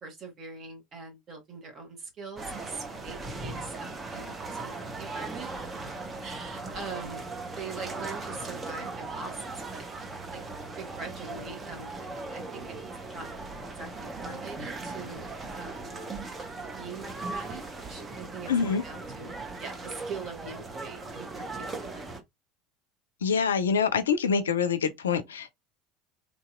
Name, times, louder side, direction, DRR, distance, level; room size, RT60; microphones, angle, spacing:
voice 1, 0.0-5.5 6.2-7.2 7.6-9.9 10.3-10.4 10.8-11.9 12.3-12.8 13.1-13.3 13.8-13.9 14.2-15.3 15.6-15.8 16.8-19.3 19.6-22.2, right 4 dB, 35° right, 1.5 m, -42 dB
sound 1, 2.4-22.2, right 3 dB, 20° right, 0.8 m, -38 dB
voice 2, 18.5-18.8 23.2-25.5, left 6 dB, 75° left, 0.4 m, -25 dB
3.5 x 2.7 x 2.4 m
figure-of-eight pair, 70°, 0 cm